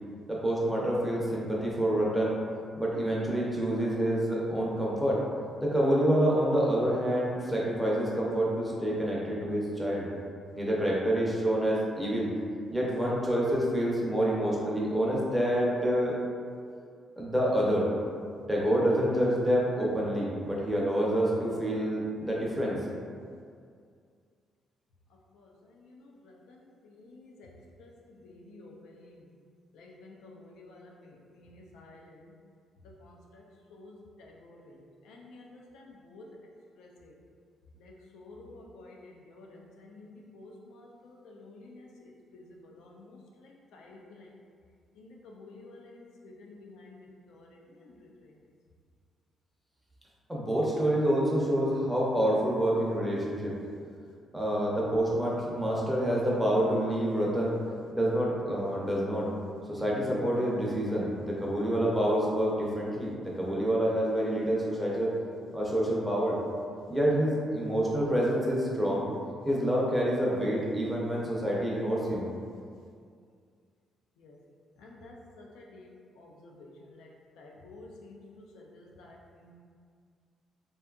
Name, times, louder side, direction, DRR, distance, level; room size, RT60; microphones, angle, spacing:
voice 1, 0.3-2.4 2.8-5.2 5.6-10.1 10.5-12.3 12.7-16.2 17.2-17.9 18.5-22.8 50.3-53.5 54.3-57.5 57.9-59.3 59.7-65.1 65.5-66.4 66.9-69.0 69.5-72.3, equal, 5° right, -5 dB, 0.6 m, -27 dB
voice 2, 27.0-27.5 27.8-27.9 28.2-29.1 29.7-31.1 31.5-32.1 33.0-33.4 33.7-33.9 34.2-34.6 35.1-36.3 36.8-37.1 37.8-41.8 42.3-42.4 42.8-43.2 43.7-44.3 45.0-46.0 46.4-47.5 48.0-48.1 74.2-74.3 74.8-75.8 76.2-77.1 77.4-78.2 78.5-79.5, left 2 dB, 90° left, -2 dB, 0.4 m, -51 dB
2.6 x 2.3 x 2.3 m, 2.2 s
cardioid pair, 90°, 0 cm